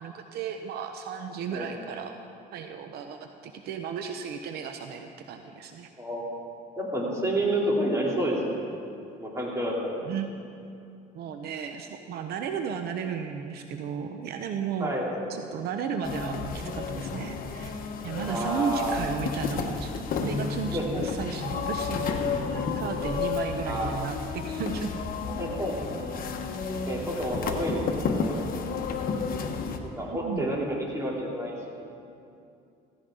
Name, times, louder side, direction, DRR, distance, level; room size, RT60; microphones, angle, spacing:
voice 1, 0.0-2.1 2.5-5.9 10.0-10.4 11.1-14.9 15.3-17.7 18.0-19.9 20.2-25.0 27.2-27.3 30.0-30.6, right 6 dB, 70° right, 6 dB, 0.8 m, -34 dB
voice 2, 6.8-8.4 9.2-10.0 14.8-15.1 18.2-19.0 20.7-21.0 23.6-23.9 25.4-25.7 26.9-27.8 28.1-28.4 29.8-31.6, right 1 dB, 15° right, -4 dB, 3.2 m, -29 dB
sound 1, 16.0-29.8, left 5 dB, 60° left, 1.2 m, -32 dB
15.5 x 15.0 x 3.8 m, 2.6 s
cardioid pair, 110°, 17 cm